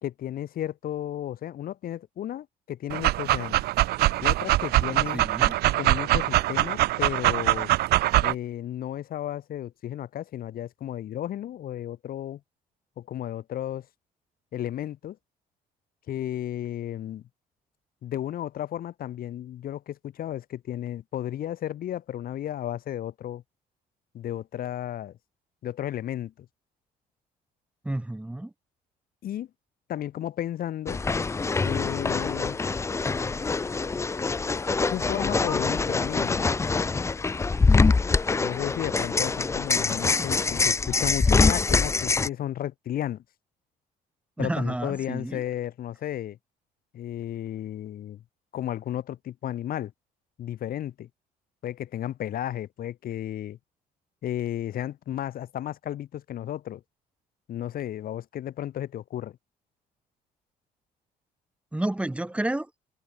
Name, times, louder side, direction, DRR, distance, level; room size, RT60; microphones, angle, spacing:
voice 1, 0.0-3.6 4.2-5.3 5.7-7.7 8.2-12.4 13.0-13.9 14.5-15.2 16.1-17.2 18.0-23.4 24.1-25.1 25.6-26.5 29.2-29.5 29.9-31.0 31.6-32.6 34.9-36.5 38.4-43.2 44.4-46.4 46.9-48.2 48.5-49.9 50.4-51.1 51.6-53.6 54.2-56.8 57.5-59.4, left 11 dB, 60° left, 2.6 m, -33 dB
Dog, 2.9-8.3, right 16 dB, 70° right, 0.7 m, -23 dB
voice 2, 5.1-5.6 27.8-28.5 44.4-45.4 61.7-62.7, right 1 dB, 5° right, 1.1 m, -30 dB
sound 1, 30.9-42.3, left 4 dB, 15° left, 0.5 m, -24 dB
cardioid pair, 110°, 17 cm